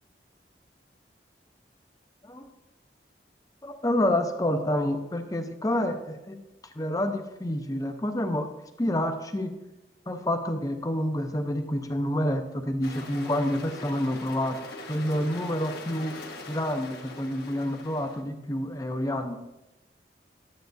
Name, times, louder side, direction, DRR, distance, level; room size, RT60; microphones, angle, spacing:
voice 1, 3.6-6.4 6.8-8.5 8.8-9.5 10.1-14.6 14.9-16.2 16.5-19.4, left 1 dB, 20° left, 6 dB, 0.6 m, -28 dB
sound 1, 12.8-18.2, left 2 dB, 60° left, 1.3 m, -42 dB
11.5 x 7.8 x 2.6 m, 0.98 s
head